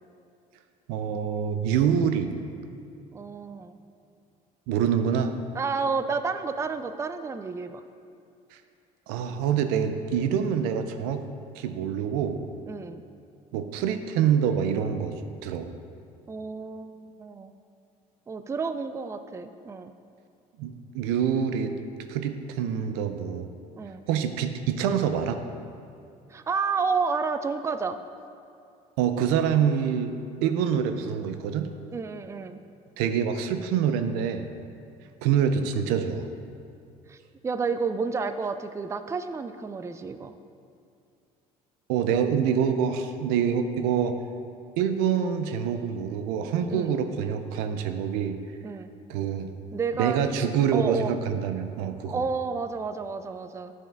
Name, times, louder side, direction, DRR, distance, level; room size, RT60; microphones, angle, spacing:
voice 1, 0.9-2.4 4.7-5.3 9.1-11.2 11.6-12.4 13.5-15.7 20.6-21.7 22.1-23.5 24.1-25.4 29.0-30.1 30.4-31.7 33.0-34.5 35.2-36.3 41.9-44.2 44.8-48.4 49.1-49.5 50.0-52.2, right 8 dB, 85° right, 8 dB, 0.5 m, -26 dB
voice 2, 3.1-3.8 5.5-7.8 12.7-13.0 16.3-17.6 18.3-19.9 23.8-24.1 26.3-28.0 31.9-32.6 37.1-37.2 37.4-40.3 46.7-46.9 48.6-48.9 49.7-50.2 50.7-51.1 52.0-53.7, right 5 dB, 20° right, 10 dB, 0.4 m, -30 dB
9.0 x 6.3 x 3.4 m, 2.5 s
supercardioid pair, 90°, 16 cm